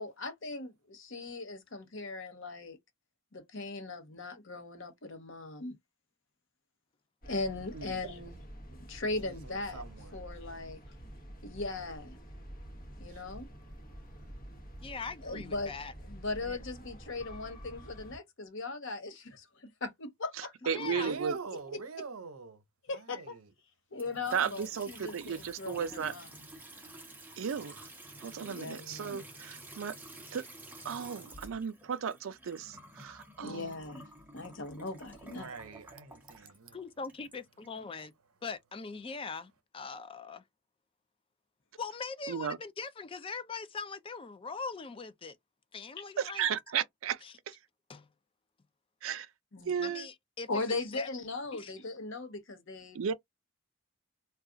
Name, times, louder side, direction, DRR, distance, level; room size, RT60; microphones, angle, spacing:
voice 1, 0.0-2.8 3.3-5.7 7.3-8.4 8.7-9.8 10.1-10.8 11.4-12.2 13.0-13.5 15.2-15.7 16.1-20.5 22.8-23.4 23.9-26.3 28.4-29.2 33.4-34.0 34.3-35.5 49.5-49.9 50.5-53.1, left 3 dB, 60° left, 0.8 m, -39 dB
sound 1, 7.2-18.2, equal, 40° left, 1.1 m, -48 dB
voice 2, 9.2-10.2 13.1-13.5 14.2-14.4 20.9-22.6 22.9-23.5 35.3-36.8, right 5 dB, 85° right, 0.8 m, -44 dB
voice 3, 14.8-15.9 16.4-16.6 20.6-21.1 36.7-38.1 38.4-40.4 41.8-45.4 45.7-46.5 47.2-47.3 47.9-48.1 49.8-50.5 50.9-51.1 51.5-51.7, left 4 dB, 25° left, 0.3 m, -41 dB
voice 4, 20.7-21.3 24.3-26.1 27.4-27.8 28.2-29.9 30.3-30.4 30.8-33.7 42.3-42.6 46.2-47.2 47.5-47.6 49.0-49.3 49.7-50.1 52.9-53.1, right 7 dB, 65° right, 0.4 m, -34 dB
Water tap faucet / Sink (filling or washing) / Trickle dribble, 23.9-38.0, right 1 dB, 10° right, 0.7 m, -51 dB
2.3 x 2.3 x 3.7 m
head